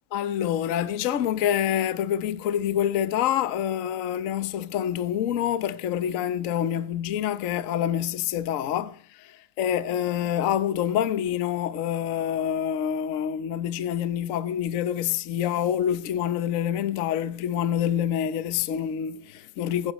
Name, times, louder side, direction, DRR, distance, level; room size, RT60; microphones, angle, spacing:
voice 1, 0.1-19.9, left 10 dB, 55° left, 0.9 m, -27 dB
15.5 x 15.0 x 3.1 m
omnidirectional pair, 2.3 m